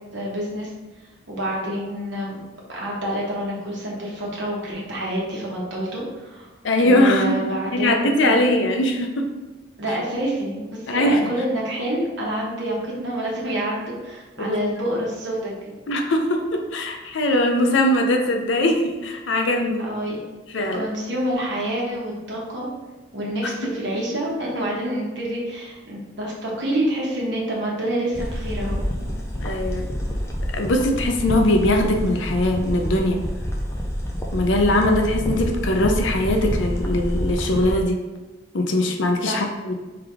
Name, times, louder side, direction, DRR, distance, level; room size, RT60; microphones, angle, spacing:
voice 1, 0.1-0.7 1.3-2.4 2.7-6.5 6.8-8.4 9.8-15.7 19.8-20.2 20.6-22.7 23.1-29.2 39.2-39.5, right 1 dB, 70° right, -4 dB, 1.2 m, -27 dB
voice 2, 6.6-7.4 7.7-9.3 10.9-11.2 14.4-14.6 15.9-19.9 20.5-20.9 23.4-23.7 29.4-29.9 30.5-33.2 34.3-38.0 38.5-39.7, left 1 dB, 80° left, 4 dB, 0.6 m, -21 dB
sound 1, 28.1-37.8, equal, 15° left, 0.4 m, -27 dB
3.5 x 3.5 x 3.4 m, 1.2 s
head